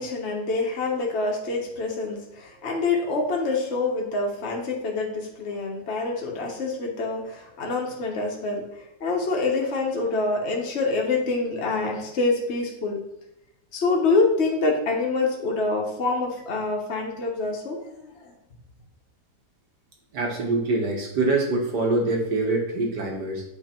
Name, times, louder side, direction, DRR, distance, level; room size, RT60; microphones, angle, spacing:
voice 1, 0.0-8.6 9.0-13.0 13.7-18.3, left 3 dB, 45° left, 0 dB, 1.4 m, -26 dB
voice 2, 20.1-23.4, right 2 dB, 85° right, 0 dB, 1.9 m, -24 dB
8.1 x 3.4 x 4.4 m, 0.84 s
omnidirectional pair, 1.7 m